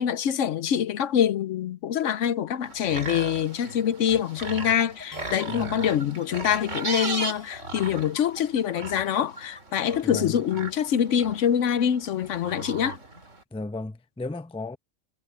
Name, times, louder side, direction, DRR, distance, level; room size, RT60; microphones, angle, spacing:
voice 1, 0.0-13.0, left 9 dB, 70° left, 1.0 m, -25 dB
sound 1, 2.6-13.4, right 2 dB, 65° right, 3.5 m, -37 dB
sound 2, 4.4-10.6, right 1 dB, 15° right, 3.3 m, -44 dB
voice 2, 5.5-5.8 10.0-10.4 13.5-14.8, left 2 dB, 5° left, 0.5 m, -34 dB
omnidirectional pair, 1.4 m